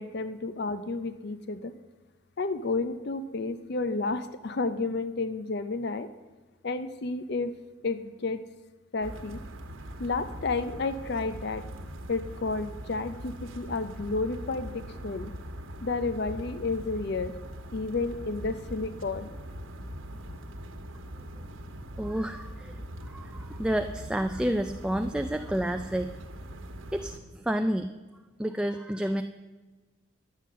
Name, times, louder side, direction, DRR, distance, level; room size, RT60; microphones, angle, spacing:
voice 1, 0.0-1.7 2.4-6.1 6.6-7.5 7.8-8.4 8.9-9.4 10.0-11.6 12.1-15.3 15.8-17.3 17.7-19.3, left 3 dB, 55° left, 12 dB, 0.5 m, -31 dB
sound 1, 9.0-27.2, right 1 dB, 75° right, 1.3 m, -41 dB
voice 2, 22.0-26.1 26.9-27.9 28.4-29.2, right 1 dB, 5° right, 6 dB, 0.3 m, -30 dB
11.5 x 8.4 x 7.4 m, 1.3 s
head